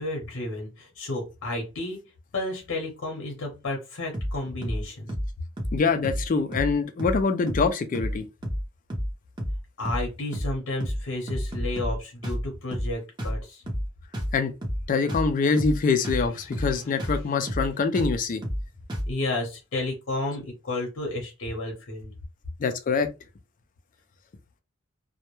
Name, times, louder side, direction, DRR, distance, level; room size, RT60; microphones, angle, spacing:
voice 1, 0.0-2.0 2.3-5.1 9.8-13.6 16.7-16.9 19.1-22.1, left 2 dB, 65° left, 0.7 m, -32 dB
sound 1, 4.1-4.4 4.6-4.8 5.1-5.3 5.6-5.8 6.0-6.3 6.5-6.7 7.0-7.2 7.5-7.7 7.9-8.2 8.4-8.6 8.9-9.1 9.4-9.6 9.8-10.1 10.3-10.5 10.8-11.0 11.3-12.0 12.2-12.4 12.7-12.9 13.2-13.4 13.7-13.9 14.1-14.4 14.6-14.8 15.1-15.3 15.6-15.8 16.0-16.3 16.5-16.7 17.0-17.2 17.5-17.7 17.9-18.2 18.4-18.6 18.9-19.1, equal, 20° right, 0.7 m, -29 dB
voice 2, 5.7-8.2 14.3-14.5 14.9-18.4 22.6-23.1, left 4 dB, 40° left, 0.3 m, -24 dB
2.2 x 2.0 x 2.9 m
head